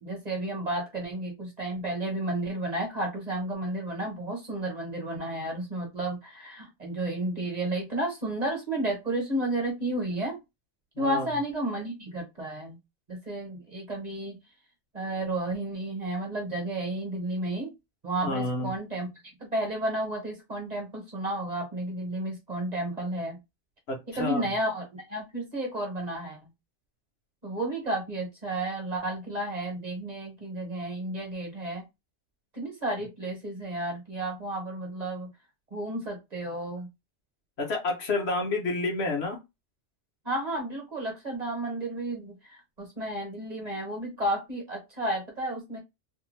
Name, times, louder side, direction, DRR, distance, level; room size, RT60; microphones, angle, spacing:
voice 1, 0.0-10.4 11.0-12.8 13.1-14.4 14.9-17.7 18.0-19.1 19.4-23.4 24.1-26.4 27.4-31.8 32.5-35.3 35.7-36.9 40.2-45.8, right 1 dB, 35° right, 0 dB, 1.0 m, -32 dB
voice 2, 11.0-11.3 18.2-18.7 23.9-24.4 37.6-39.4, left 2 dB, 65° left, 2 dB, 1.0 m, -29 dB
2.6 x 2.2 x 3.1 m, 0.22 s
omnidirectional pair, 1.2 m